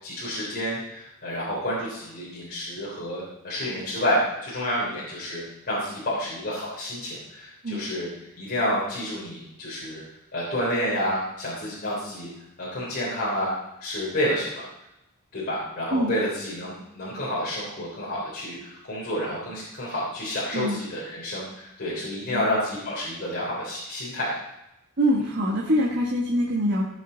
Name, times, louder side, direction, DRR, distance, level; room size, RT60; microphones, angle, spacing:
voice 1, 0.0-8.1 8.4-10.0 10.3-12.3 12.6-13.5 13.8-14.7 15.3-24.3, equal, 45° left, -7 dB, 3.6 m, -29 dB
voice 2, 25.0-26.8, equal, 55° right, -4 dB, 1.5 m, -24 dB
17.5 x 6.6 x 4.0 m, 0.87 s
head